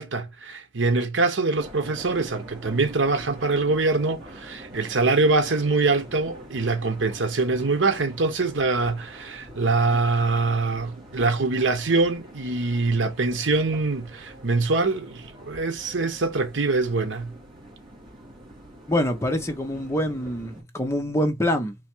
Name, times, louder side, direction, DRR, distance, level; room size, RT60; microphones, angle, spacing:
voice 1, 0.0-17.3, right 3 dB, 80° right, 1.0 m, -24 dB
sound 1, 1.5-20.6, right 1 dB, 25° right, 1.8 m, -45 dB
voice 2, 18.9-21.8, left 1 dB, 15° left, 0.8 m, -25 dB
4.3 x 2.7 x 4.4 m
head